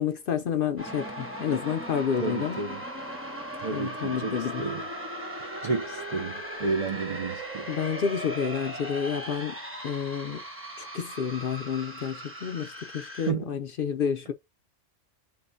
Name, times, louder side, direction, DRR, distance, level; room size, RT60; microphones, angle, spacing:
voice 1, 0.0-2.6 3.7-4.7 7.7-9.6 9.8-10.4 10.8-14.3, left 7 dB, 60° left, 0.6 m, -30 dB
sound 1, 0.8-13.3, right 1 dB, 15° right, 0.7 m, -38 dB
voice 2, 2.2-2.8 3.6-4.8 5.6-7.7 13.3-13.4, right 4 dB, 45° right, 0.4 m, -31 dB
3.7 x 2.2 x 3.8 m
omnidirectional pair, 1.3 m